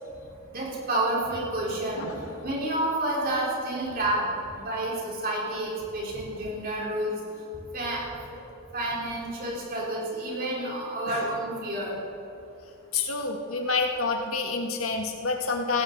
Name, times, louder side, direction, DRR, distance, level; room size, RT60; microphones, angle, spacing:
voice 1, 0.5-7.4 7.7-8.4 8.7-12.0, right 1 dB, 45° right, -4 dB, 4.5 m, -30 dB
voice 2, 2.0-2.4 11.0-11.3 12.9-15.8, left 4 dB, 85° left, 3 dB, 1.7 m, -28 dB
17.5 x 16.5 x 4.1 m, 2.8 s
head